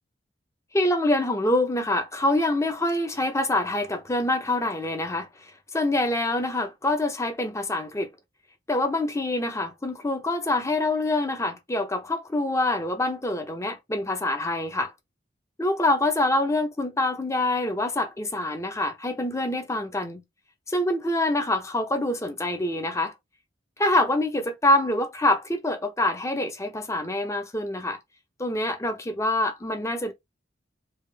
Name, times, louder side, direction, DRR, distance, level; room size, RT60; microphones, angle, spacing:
voice 1, 0.7-8.1 8.7-14.9 15.6-20.2 20.7-23.1 23.8-28.0 28.4-30.1, left 1 dB, 15° left, 0.7 m, -25 dB
3.5 x 2.5 x 3.4 m
head